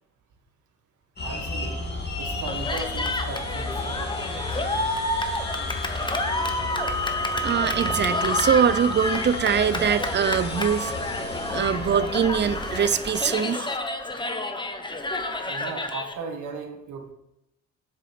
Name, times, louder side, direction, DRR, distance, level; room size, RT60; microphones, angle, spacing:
sound 1, 1.2-12.8, left 1 dB, 35° left, 2.3 m, -31 dB
voice 1, 1.2-4.2 15.4-17.1, right 4 dB, 75° right, 5 dB, 1.6 m, -37 dB
Cheering, 2.5-16.1, left 2 dB, 15° left, 1.1 m, -30 dB
voice 2, 7.4-10.9 11.5-13.8, right 7 dB, 35° right, 15 dB, 0.6 m, -23 dB
7.9 x 7.0 x 5.2 m, 0.85 s
cardioid pair, 90°, 30 cm